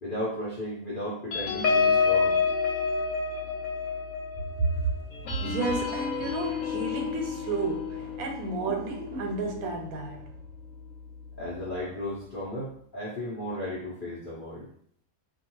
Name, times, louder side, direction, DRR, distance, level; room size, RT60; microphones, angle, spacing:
voice 1, 0.0-2.4 11.4-14.7, left 1 dB, 45° left, 0.8 m, -35 dB
sound 1, 1.3-10.2 10.7-10.9 11.2-11.5, left 5 dB, 90° left, 1.1 m, -29 dB
voice 2, 5.4-10.3, right 4 dB, 90° right, 1.1 m, -32 dB
2.3 x 2.3 x 3.0 m
omnidirectional pair, 1.5 m